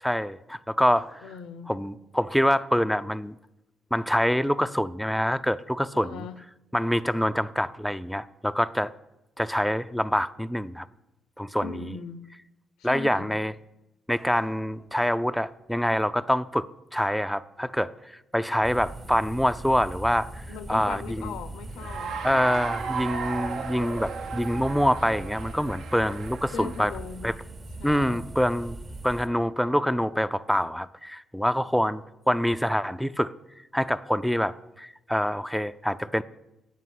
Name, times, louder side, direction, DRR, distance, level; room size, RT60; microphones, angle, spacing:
voice 1, 0.0-1.2 1.7-3.3 3.9-6.2 6.7-8.9 9.4-10.9 11.4-12.0 12.8-13.5 14.1-21.3 22.2-26.9 27.2-27.3 27.8-28.8 29.0-33.3 33.7-36.2, equal, ahead, 0.3 m, -26 dB
voice 2, 1.2-1.7 5.9-6.4 11.6-12.2 12.8-13.3 20.5-22.2 26.5-27.4 27.8-28.2, left 6 dB, 90° left, 0.6 m, -39 dB
sound 1, 18.6-29.3, right 2 dB, 30° right, 0.9 m, -40 dB
Cheering / Applause, 21.7-26.9, right 5 dB, 75° right, 0.8 m, -35 dB
8.2 x 5.3 x 7.6 m
cardioid pair, 90°, 0 cm